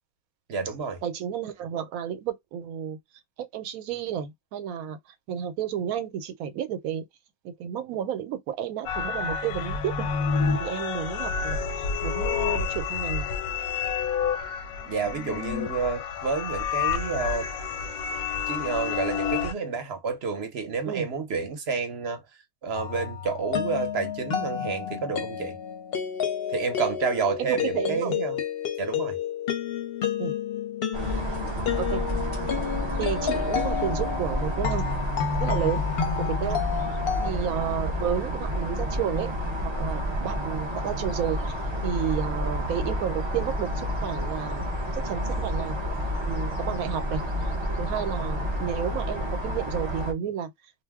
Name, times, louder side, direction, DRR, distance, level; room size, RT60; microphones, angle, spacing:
voice 1, 0.5-1.0 14.9-17.5 18.5-22.2 22.6-25.6 26.5-28.4 28.8-29.2, right 5 dB, 55° right, 0.8 m, -29 dB
voice 2, 1.0-3.0 3.4-5.0 5.3-7.0 7.4-10.1 10.6-13.3 20.9-21.1 27.4-28.2 30.2-30.3 31.8-32.0 33.0-34.8 35.4-35.8 36.2-36.6 37.2-39.3 39.6-41.4 41.8-44.7 44.9-45.8 46.2-47.2 47.8-50.5, right 9 dB, 80° right, 1.0 m, -31 dB
sound 1, 8.9-19.5, left 6 dB, 90° left, 1.1 m, -29 dB
sound 2, 22.7-37.3, left 8 dB, 55° left, 0.7 m, -30 dB
sound 3, 30.9-50.1, equal, 35° right, 0.5 m, -30 dB
2.6 x 2.0 x 3.4 m
omnidirectional pair, 1.5 m